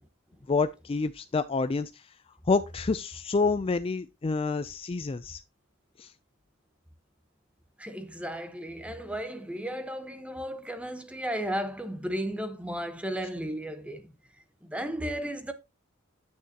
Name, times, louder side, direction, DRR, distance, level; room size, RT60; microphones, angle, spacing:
voice 1, 0.5-2.1 2.5-5.4 6.0-6.1, left 4 dB, 25° left, 0.4 m, -28 dB
voice 2, 7.8-14.1 14.6-15.5, equal, 5° right, 1.0 m, -34 dB
9.4 x 9.2 x 2.8 m
head